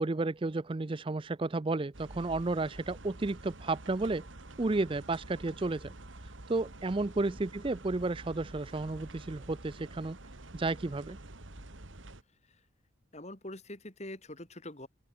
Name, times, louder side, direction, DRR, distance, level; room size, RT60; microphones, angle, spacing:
voice 1, 0.0-4.3 4.6-5.9 6.5-10.2 10.5-11.2, right 2 dB, 25° right, 0.5 m, -32 dB
sound 1, 1.9-12.2, right 2 dB, 80° right, 2.3 m, -48 dB
voice 2, 13.1-14.9, left 1 dB, 35° left, 4.2 m, -45 dB
open air
head